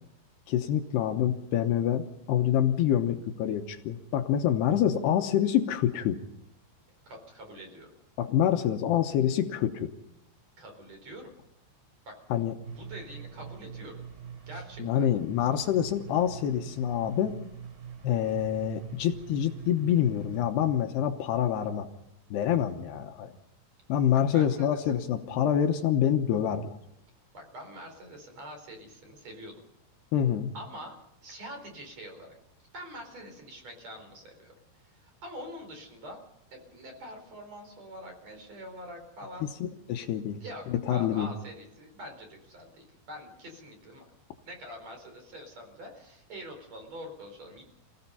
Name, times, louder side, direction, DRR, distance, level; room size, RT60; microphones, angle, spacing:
voice 1, 0.5-6.2 8.2-9.9 12.3-12.5 14.8-17.3 18.0-21.9 22.3-23.3 23.9-26.8 30.1-30.5 39.9-40.4 40.7-41.3, left 10 dB, 75° left, 6 dB, 3.0 m, -26 dB
voice 2, 7.1-7.9 10.6-11.3 12.1-12.2 12.7-14.0 14.5-15.1 24.3-25.0 27.3-29.5 30.5-32.3 32.7-34.6 34.9-36.2 36.5-39.5 40.4-44.0 44.4-47.6, equal, 40° right, 4 dB, 5.1 m, -45 dB
sound 1, 12.6-20.4, right 7 dB, 70° right, 5.1 m, -44 dB
28.5 x 17.0 x 5.6 m, 0.82 s
omnidirectional pair, 5.1 m